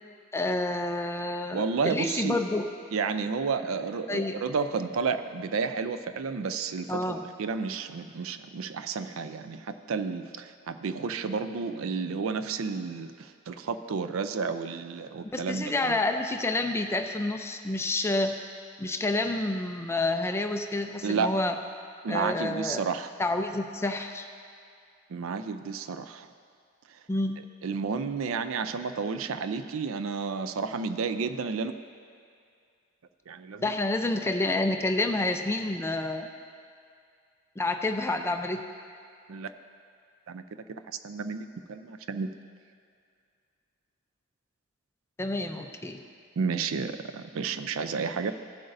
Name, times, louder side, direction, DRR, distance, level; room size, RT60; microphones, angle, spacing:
voice 1, 0.3-2.7 4.1-4.4 6.9-7.3 15.2-18.4 18.8-21.6 22.1-22.8 23.2-24.3 27.1-27.4 33.6-36.3 37.6-38.6 45.2-46.0, left 2 dB, 10° left, 5 dB, 0.4 m, -29 dB
voice 2, 1.5-2.4 2.9-16.0 21.0-21.4 22.0-23.1 25.1-26.3 27.6-31.7 33.3-33.7 39.3-39.5 40.3-40.4 40.7-42.3 46.4-48.3, right 5 dB, 70° right, 10 dB, 0.4 m, -31 dB
15.5 x 7.9 x 2.6 m, 2.4 s
head